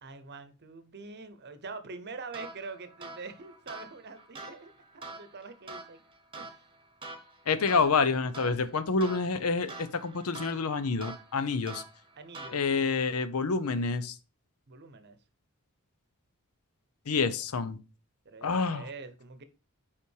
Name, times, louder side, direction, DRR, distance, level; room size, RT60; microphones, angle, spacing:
voice 1, 0.0-6.0 6.4-6.6 12.2-12.6 14.7-15.2 18.2-19.4, right 4 dB, 50° right, 0.8 m, -45 dB
sound 1, 2.3-13.0, right 3 dB, 25° right, 1.1 m, -46 dB
voice 2, 7.5-11.8 12.5-14.2 17.1-17.8 18.4-18.9, left 4 dB, 80° left, 0.6 m, -28 dB
5.6 x 5.1 x 4.6 m
head